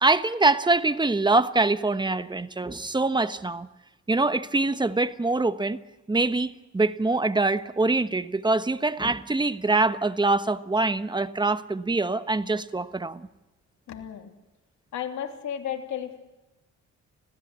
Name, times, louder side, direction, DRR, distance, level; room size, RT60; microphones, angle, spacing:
voice 1, 0.0-3.7 4.1-5.8 6.1-13.3, right 3 dB, 15° right, 12 dB, 1.1 m, -24 dB
voice 2, 13.9-14.3 14.9-16.2, left 9 dB, 70° left, 3 dB, 3.1 m, -33 dB
25.5 x 16.5 x 8.3 m, 1.0 s
cardioid pair, 90°, 30 cm